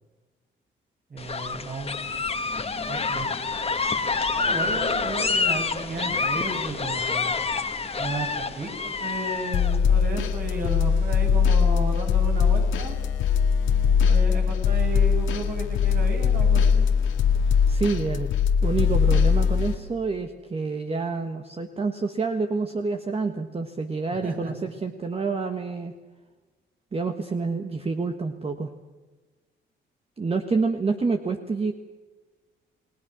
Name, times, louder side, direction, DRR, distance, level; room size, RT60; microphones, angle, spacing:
voice 1, 1.1-2.2 2.9-3.3 4.3-7.4 8.0-13.0 14.1-16.9 24.1-24.5, right 2 dB, 45° right, 1 dB, 7.3 m, -33 dB
sound 1, 1.2-9.8, left 4 dB, 30° left, 1.9 m, -27 dB
sound 2, 9.5-19.8, left 6 dB, 85° left, 2.2 m, -21 dB
voice 2, 17.4-18.3 18.6-25.9 26.9-28.7 30.2-31.7, right 4 dB, 30° right, 5 dB, 1.5 m, -28 dB
29.5 x 19.0 x 6.3 m, 1.2 s
cardioid pair, 90°, 20 cm